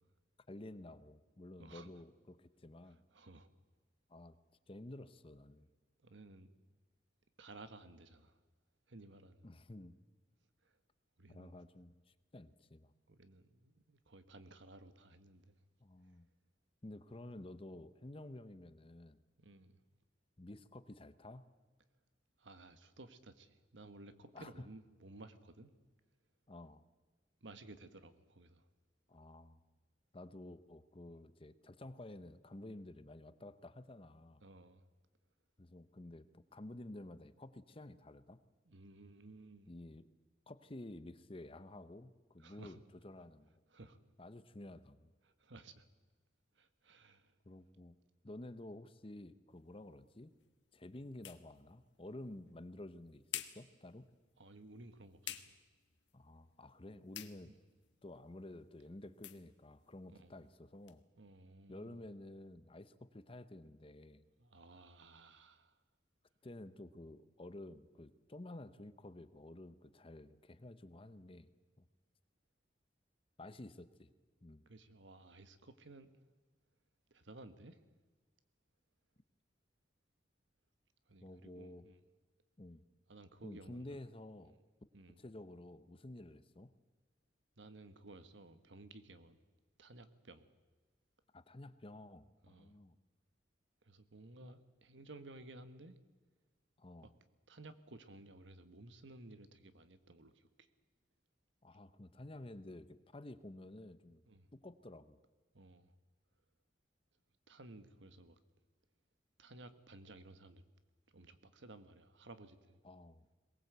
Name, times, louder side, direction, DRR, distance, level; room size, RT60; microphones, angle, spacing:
voice 1, 0.5-3.0 4.1-4.4 4.7-5.7 9.4-9.9 11.3-11.9 12.3-12.9 15.8-16.3 16.8-19.2 20.4-21.5 24.3-24.7 26.5-26.8 29.1-29.6 30.1-34.4 35.6-38.4 39.7-40.1 40.5-43.6 44.2-45.1 47.4-48.0 48.2-50.3 50.7-54.1 56.1-57.5 58.0-61.0 61.7-64.2 66.4-71.5 71.8-71.9 73.4-74.1 74.4-74.6 81.2-81.9 82.6-82.8 83.4-84.6 85.2-86.7 91.3-93.0 94.4-94.6 96.8-97.2 101.6-104.2 104.5-105.2 112.8-113.2, left 1 dB, 30° left, 13 dB, 0.8 m, -52 dB
voice 2, 1.6-1.9 3.1-3.5 6.0-6.5 7.4-8.4 8.9-9.4 10.6-10.8 11.2-11.6 13.1-15.6 19.4-19.8 22.4-25.7 27.4-28.6 34.4-34.8 38.7-39.7 42.4-42.8 43.7-44.0 45.2-45.9 46.6-47.3 54.4-55.5 57.4-57.5 60.1-60.4 61.2-62.0 64.4-65.8 74.7-76.1 77.1-77.8 81.1-82.0 83.1-84.0 84.9-85.2 87.6-89.4 89.8-90.5 92.4-92.7 93.8-96.0 97.0-97.1 97.5-100.7 104.3-104.5 105.5-105.9 107.5-108.4 109.4-110.6 111.1-112.8, right 2 dB, 85° right, 11 dB, 1.4 m, -56 dB
sound 1, 49.5-61.0, left 12 dB, 80° left, 1.3 m, -53 dB
22.0 x 19.0 x 8.1 m, 1.3 s
head